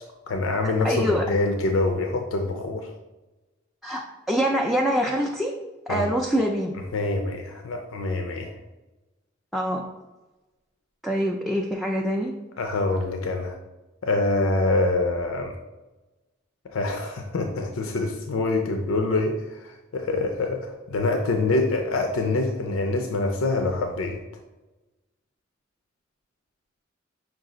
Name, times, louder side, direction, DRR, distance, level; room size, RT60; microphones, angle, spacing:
voice 1, 0.3-2.9 5.9-6.1 6.9-8.6 12.6-13.6 14.0-15.5 16.6-24.2, left 2 dB, 90° left, 4 dB, 0.5 m, -25 dB
voice 2, 0.8-1.2 3.8-4.0 4.3-5.5 5.9-6.7 9.5-9.8 11.0-12.3, equal, ahead, -2 dB, 0.3 m, -24 dB
5.9 x 2.4 x 3.7 m, 1.1 s
head